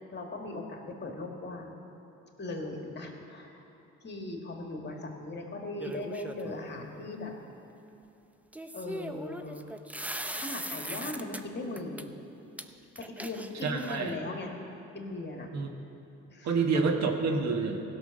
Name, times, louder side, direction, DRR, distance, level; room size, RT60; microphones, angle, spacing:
voice 1, 0.0-1.8 2.4-3.6 4.0-7.3 8.7-9.7 10.4-12.1 13.0-14.5 14.9-15.5 16.3-16.6, left 2 dB, 35° left, 2 dB, 1.9 m, -39 dB
sound 1, 5.8-6.5 8.5-11.4 11.8-12.0 12.6-12.7 12.9-14.1, right 1 dB, 5° right, 0.6 m, -39 dB
voice 2, 13.6-14.1 15.5-15.7 16.4-17.8, right 4 dB, 65° right, 4 dB, 1.3 m, -28 dB
15.5 x 6.2 x 6.5 m, 2.8 s
supercardioid pair, 65°, 29 cm